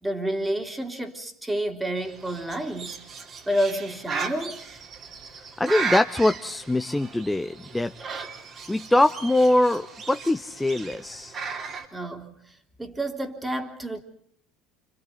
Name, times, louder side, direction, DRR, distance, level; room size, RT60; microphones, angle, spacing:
voice 1, 0.0-3.0 3.5-4.6 11.9-14.0, right 1 dB, 10° right, 3.4 m, -29 dB
Bird, 2.0-11.9, right 5 dB, 40° right, 3.8 m, -36 dB
voice 2, 5.6-8.3 8.7-11.4, left 1 dB, 10° left, 0.9 m, -23 dB
29.5 x 28.0 x 4.0 m
figure-of-eight pair, 70°, 0 cm